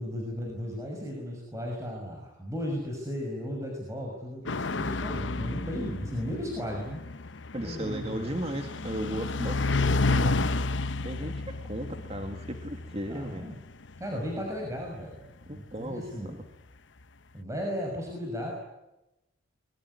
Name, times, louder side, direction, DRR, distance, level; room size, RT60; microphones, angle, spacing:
voice 1, 0.0-7.0 7.6-8.4 13.1-13.6 14.0-16.4 17.3-18.5, equal, 15° right, 0 dB, 6.1 m, -35 dB
sound 1, 4.5-15.4, left 3 dB, 70° left, 1.0 m, -31 dB
voice 2, 7.5-10.5 11.0-13.5 15.5-16.3, right 1 dB, 30° right, 5 dB, 2.2 m, -36 dB
25.0 x 23.0 x 9.9 m, 0.94 s
head